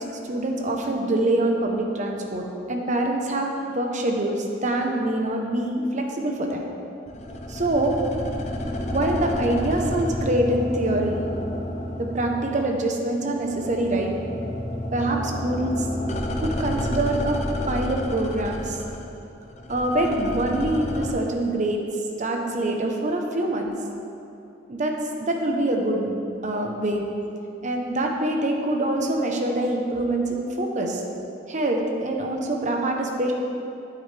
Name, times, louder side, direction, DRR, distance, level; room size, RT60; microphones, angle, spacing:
voice 1, 0.3-6.6 7.5-8.0 8.9-11.2 12.0-14.1 14.9-15.9 16.4-17.4 17.7-18.8 19.7-21.8 22.2-23.7 24.7-24.9 25.2-26.1 26.4-27.1 27.6-31.0 31.5-33.3, right 1 dB, 40° right, 2 dB, 0.9 m, -25 dB
sound 1, 7.1-13.0 13.2-21.1, left 1 dB, 35° left, 0.6 m, -30 dB
8.6 x 8.5 x 3.4 m, 2.8 s
head